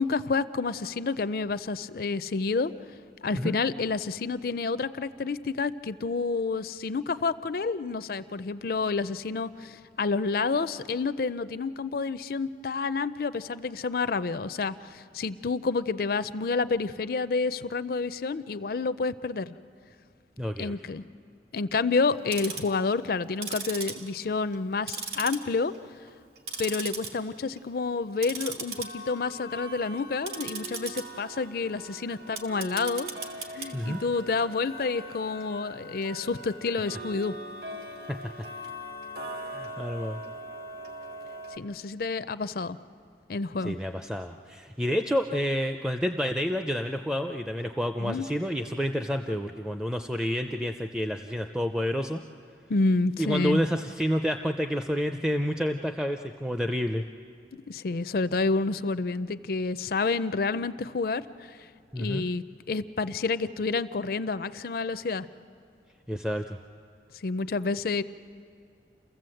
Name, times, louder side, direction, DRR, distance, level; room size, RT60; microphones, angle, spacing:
voice 1, 0.0-2.7 3.2-19.5 20.6-21.0 21.5-25.7 26.6-33.1 33.5-37.4 41.6-42.8 43.3-43.8 48.0-48.3 52.7-53.6 57.7-61.6 62.0-65.3 67.2-68.0, left 4 dB, 55° left, 14 dB, 0.5 m, -29 dB
voice 2, 20.4-20.7 33.7-34.0 38.1-38.2 39.5-40.2 43.6-52.2 53.2-57.0 61.9-62.2 66.1-66.6, equal, 5° right, 6 dB, 0.5 m, -29 dB
Tick-tock, 22.1-22.7 23.3-24.6 24.9-25.8 26.1-27.1 27.5-27.7 28.2-41.6, right 3 dB, 60° right, 2.1 m, -39 dB
29.5 x 15.0 x 7.7 m, 2.3 s
head